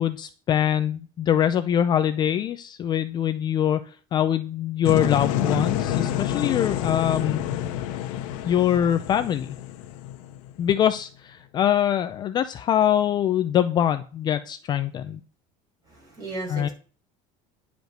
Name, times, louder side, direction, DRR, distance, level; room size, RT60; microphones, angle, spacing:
voice 1, 0.0-7.4 8.4-9.5 10.6-15.2 16.5-16.7, left 10 dB, 25° left, 9 dB, 0.5 m, -23 dB
sound 1, 4.8-10.7, left 11 dB, 85° left, 1.3 m, -28 dB
voice 2, 15.9-16.7, right 2 dB, 25° right, 0 dB, 5.8 m, -35 dB
10.5 x 5.1 x 8.0 m, 0.39 s
cardioid pair, 170°, 16 cm